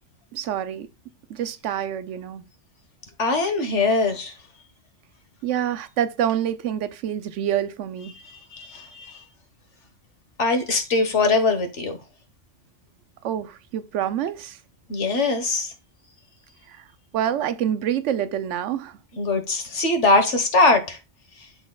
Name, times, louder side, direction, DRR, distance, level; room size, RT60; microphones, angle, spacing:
voice 1, 0.3-0.9 1.3-2.4 5.4-8.1 13.2-14.6 16.7-16.8 17.1-19.0, right 10 dB, 90° right, 1.0 m, -27 dB
voice 2, 3.2-4.3 8.2-9.2 10.4-12.0 14.9-15.7 19.2-21.0, left 3 dB, 80° left, 1.7 m, -22 dB
12.0 x 4.1 x 2.3 m
omnidirectional pair, 1.2 m